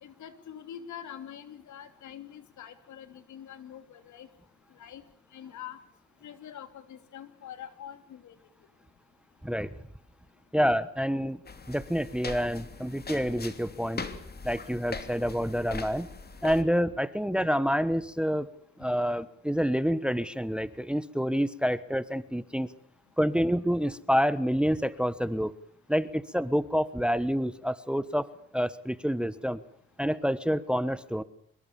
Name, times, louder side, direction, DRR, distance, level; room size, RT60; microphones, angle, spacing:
voice 1, 0.0-4.3 4.8-5.0 5.3-5.8 6.2-8.3, left 9 dB, 70° left, 10 dB, 3.0 m, -45 dB
voice 2, 10.5-11.4 11.7-14.0 14.4-16.1 16.4-18.5 18.8-22.7 23.2-25.5 25.9-29.6 30.0-31.2, equal, 5° right, 16 dB, 1.2 m, -28 dB
sound 1, 11.5-16.6, left 4 dB, 30° left, 3.0 m, -41 dB
25.0 x 22.0 x 7.3 m, 0.63 s
cardioid pair, 90°, 30 cm